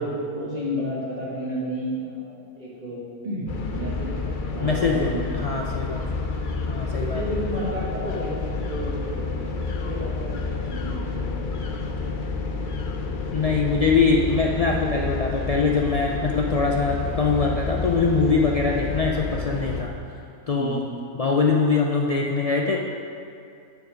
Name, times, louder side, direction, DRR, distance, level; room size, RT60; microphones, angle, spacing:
voice 1, 0.0-4.1 4.4-5.2 6.5-6.6 6.9-12.1 13.4-13.5 20.5-20.8, equal, 30° right, -7 dB, 2.4 m, -32 dB
sound 1, 3.5-19.8, left 4 dB, 45° left, 0.7 m, -29 dB
voice 2, 4.6-5.1 5.4-6.0 6.7-7.2 13.3-19.9 20.5-20.8 21.1-22.8, left 4 dB, 70° left, 0 dB, 0.3 m, -22 dB
9.9 x 7.1 x 5.0 m, 2.5 s
omnidirectional pair, 1.5 m